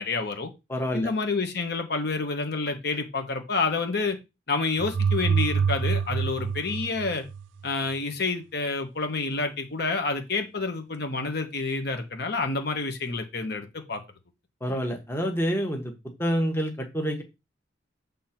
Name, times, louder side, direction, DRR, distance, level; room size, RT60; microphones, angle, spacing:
voice 1, 0.0-0.5 0.9-4.2 4.5-7.2 7.6-14.0, left 3 dB, 60° left, 5 dB, 1.2 m, -28 dB
voice 2, 0.7-1.1 14.6-15.9 16.2-17.2, equal, 15° left, 3 dB, 1.2 m, -27 dB
sound 1, 4.8-7.7, right 6 dB, 80° right, 0.4 m, -26 dB
7.2 x 3.6 x 5.9 m, 0.25 s
head